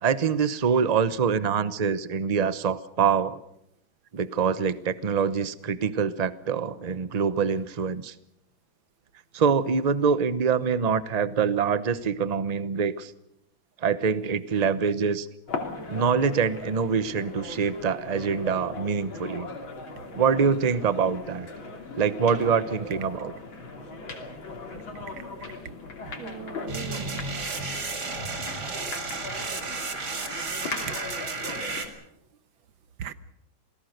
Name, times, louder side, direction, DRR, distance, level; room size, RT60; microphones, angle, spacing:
voice 1, 0.0-3.4 4.1-8.1 9.3-13.1 13.8-15.3 15.9-19.5 20.1-21.5 22.0-23.3, right 6 dB, 40° right, 14 dB, 0.6 m, -25 dB
sound 1, 15.5-32.0, left 3 dB, 75° left, 3.7 m, -39 dB
voice 2, 26.1-27.2 30.8-30.9 33.0-33.1, right 9 dB, 75° right, 13 dB, 1.9 m, -38 dB
sound 2, 26.7-31.9, right 4 dB, 55° right, 2.9 m, -33 dB
28.0 x 19.0 x 6.6 m, 0.77 s
omnidirectional pair, 2.2 m